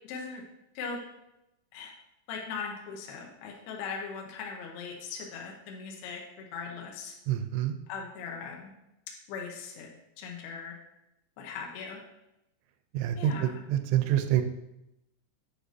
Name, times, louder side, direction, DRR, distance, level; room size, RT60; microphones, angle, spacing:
voice 1, 0.1-0.4 0.8-1.0 1.7-1.9 2.3-7.1 7.9-8.7 9.3-9.9 10.2-10.8 11.4-12.0 13.2-13.5, left 5 dB, 85° left, 0 dB, 2.3 m, -39 dB
voice 2, 7.3-7.7 12.9-14.4, right 11 dB, 85° right, 9 dB, 3.0 m, -27 dB
8.8 x 4.9 x 2.7 m, 0.88 s
omnidirectional pair, 5.5 m